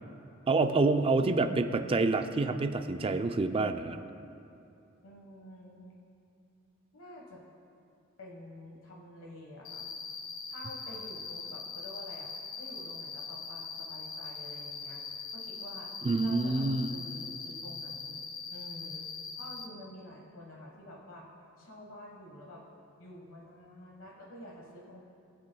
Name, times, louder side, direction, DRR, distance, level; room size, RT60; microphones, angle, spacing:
voice 1, 0.5-4.0 16.0-16.9, right 3 dB, 25° right, 8 dB, 0.4 m, -27 dB
voice 2, 5.0-6.0 6.9-7.4 8.2-9.9 10.5-15.0 15.3-15.9 16.2-18.2 18.5-19.1 19.3-21.3 21.6-22.6 23.0-25.0, left 1 dB, 70° left, -1 dB, 1.4 m, -49 dB
Cricket, 9.6-19.6, left 5 dB, 90° left, 1.0 m, -41 dB
20.0 x 7.4 x 2.3 m, 2.6 s
head